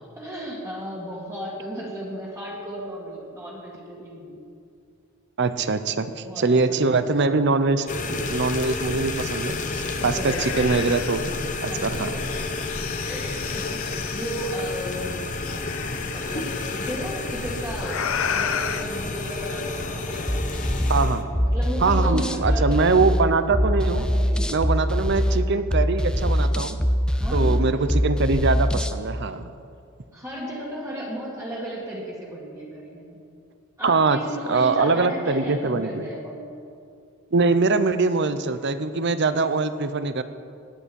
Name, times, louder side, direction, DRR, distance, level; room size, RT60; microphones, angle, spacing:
voice 1, 0.2-4.4 6.2-7.2 10.0-10.7 11.7-12.3 13.0-15.3 15.9-23.1 24.0-25.2 27.1-27.6 30.1-33.2 33.8-36.5, equal, 15° right, -4 dB, 2.1 m, -35 dB
voice 2, 5.4-11.3 11.6-12.1 20.9-21.3 21.8-24.0 24.5-26.8 27.3-29.5 33.8-34.2 34.5-36.0 37.3-40.2, right 3 dB, 55° right, 12 dB, 0.7 m, -23 dB
sound 1, 7.9-21.2, left 3 dB, 35° left, 0.9 m, -30 dB
sound 2, 8.6-8.7 9.1-11.5 12.2-14.6 15.4-17.0 17.8-18.8, left 7 dB, 70° left, 0.6 m, -33 dB
sound 3, 20.3-29.0, equal, 5° left, 0.4 m, -23 dB
19.5 x 8.9 x 5.4 m, 2.4 s
head